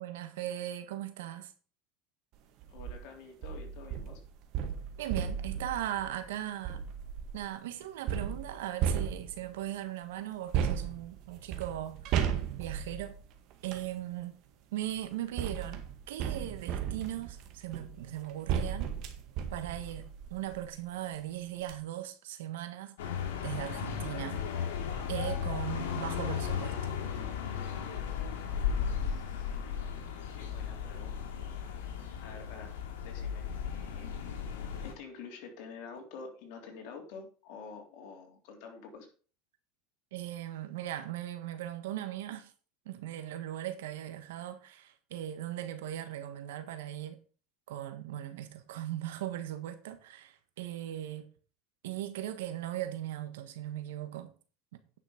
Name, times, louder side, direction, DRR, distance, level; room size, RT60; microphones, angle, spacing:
voice 1, 0.0-1.5 5.0-6.8 7.3-12.3 12.6-13.2 13.6-14.4 14.7-19.0 19.5-23.0 23.4-24.4 25.1-27.0 40.1-42.5 42.8-47.2 47.7-51.3 51.8-54.3 54.7-54.8, right 12 dB, 85° right, 1.4 m, -38 dB
sound 1, 2.6-3.0 3.4-7.5 8.1-9.6 10.5-13.9 14.8-20.8 21.2-21.3 21.6-21.7, right 8 dB, 55° right, 1.7 m, -35 dB
voice 2, 2.7-4.2 28.8-29.5 30.2-31.4 32.2-34.2 34.8-39.1, left 5 dB, 65° left, 3.2 m, -48 dB
sound 2, 23.0-34.9, left 7 dB, 90° left, 2.4 m, -35 dB
9.9 x 6.1 x 5.1 m
supercardioid pair, 125°, 0 cm